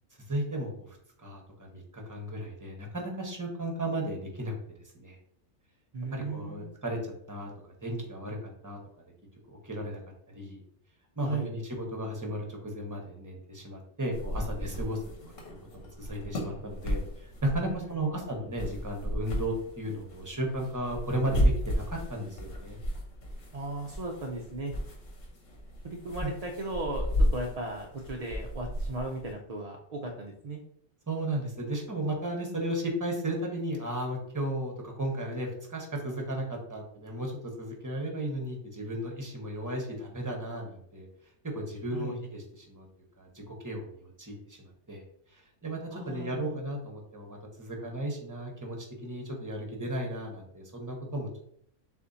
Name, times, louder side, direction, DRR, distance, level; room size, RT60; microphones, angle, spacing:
voice 1, 0.3-0.9 1.2-4.5 4.9-5.2 6.1-7.5 7.8-8.8 9.5-10.0 10.3-10.6 11.2-15.0 15.3-15.4 16.0-22.8 26.2-26.3 31.1-37.3 37.6-41.1 41.5-42.9 43.2-45.0 45.3-51.3, right 1 dB, 15° right, 1 dB, 0.8 m, -35 dB
voice 2, 5.9-6.7 11.2-11.5 17.7-18.1 23.5-24.7 25.8-30.6 41.9-42.2 45.9-46.6, right 2 dB, 60° right, 0 dB, 0.4 m, -36 dB
sound 1, 14.1-29.3, equal, 80° left, 1.4 m, -34 dB
6.7 x 2.5 x 2.6 m, 0.68 s
omnidirectional pair, 1.3 m